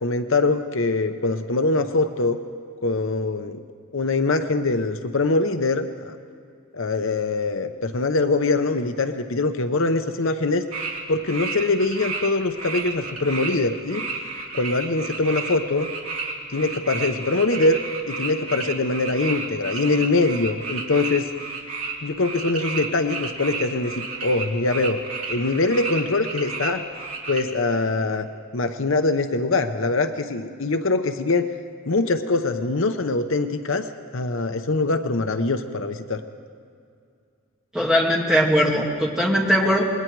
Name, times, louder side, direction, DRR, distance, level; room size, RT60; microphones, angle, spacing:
voice 1, 0.0-2.4 2.8-3.6 3.9-6.1 6.7-10.6 11.1-14.0 14.5-15.9 16.5-17.8 18.1-21.3 22.0-25.0 25.3-26.8 27.3-28.3 28.5-31.5 31.9-33.9 34.1-36.2, left 3 dB, 60° left, 8 dB, 0.8 m, -23 dB
sound 1, 10.7-11.0 11.2-12.3 12.6-27.4, right 4 dB, 75° right, 3.1 m, -32 dB
voice 2, 37.7-39.8, equal, 5° right, -2 dB, 2.3 m, -20 dB
27.0 x 21.5 x 4.7 m, 2.3 s
head